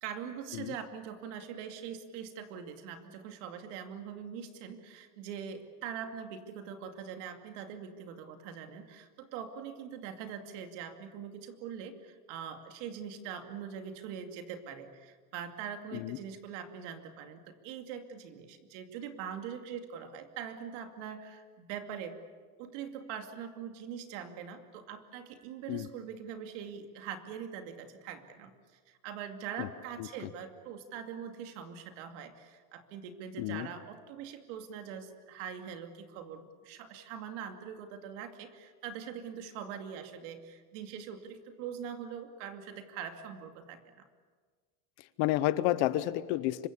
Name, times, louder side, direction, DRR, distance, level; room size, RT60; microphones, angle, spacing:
voice 1, 0.0-22.2 22.6-28.5 28.9-44.1, right 8 dB, 50° right, 7 dB, 2.5 m, -43 dB
voice 2, 33.4-33.7 45.0-46.7, left 15 dB, 35° left, 15 dB, 0.8 m, -31 dB
25.5 x 22.5 x 8.3 m, 1.5 s
supercardioid pair, 175°, 46 cm